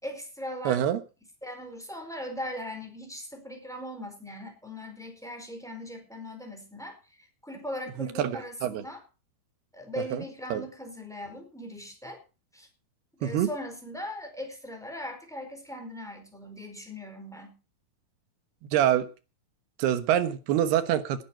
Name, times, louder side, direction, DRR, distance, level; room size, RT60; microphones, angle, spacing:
voice 1, 0.0-0.8 1.4-9.0 9.7-12.2 12.5-12.7 13.2-17.6, left 1 dB, ahead, 4 dB, 4.1 m, -39 dB
voice 2, 0.7-1.0 8.2-8.8 10.1-10.2 10.5-10.6 13.2-13.5 18.7-19.1 19.8-21.2, right 11 dB, 80° right, 12 dB, 3.2 m, -25 dB
18.5 x 9.9 x 4.5 m, 0.33 s
omnidirectional pair, 4.6 m